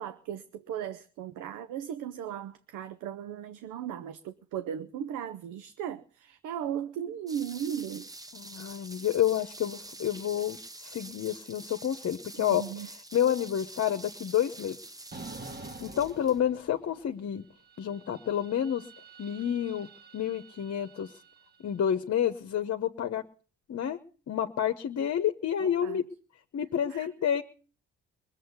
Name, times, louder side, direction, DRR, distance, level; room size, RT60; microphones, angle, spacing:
voice 1, 0.0-8.1 12.4-12.9 25.6-26.0 26.9-27.1, right 9 dB, 90° right, 0.8 m, -37 dB
sound 1, 7.3-16.4, right 2 dB, 10° right, 0.9 m, -47 dB
voice 2, 8.3-10.6 10.8-12.6 13.1-14.8 15.8-17.5 17.8-18.8 19.2-19.9 20.1-21.1 21.6-23.2 23.7-24.0 24.3-26.0 26.5-27.4, left 9 dB, 55° left, 1.1 m, -29 dB
sound 2, 15.1-17.1 17.4-21.7, right 3 dB, 35° right, 1.8 m, -48 dB
20.5 x 7.6 x 8.1 m
cardioid pair, 90°, 30 cm